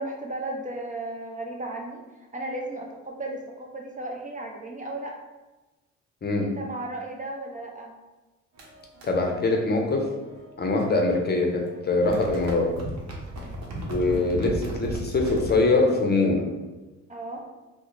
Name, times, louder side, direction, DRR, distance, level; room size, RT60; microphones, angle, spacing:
voice 1, 0.0-2.0 2.3-5.1 6.4-7.9 13.4-13.6 17.1-17.4, right 1 dB, 25° right, 0 dB, 0.4 m, -35 dB
voice 2, 6.2-6.5 9.1-10.1 10.6-12.7 13.8-16.5, left 2 dB, 35° left, 1 dB, 0.6 m, -23 dB
sound 1, 8.5-11.2 11.5-15.6, right 1 dB, 60° right, 0.9 m, -36 dB
3.7 x 2.1 x 3.0 m, 1.1 s
cardioid pair, 90°, 30 cm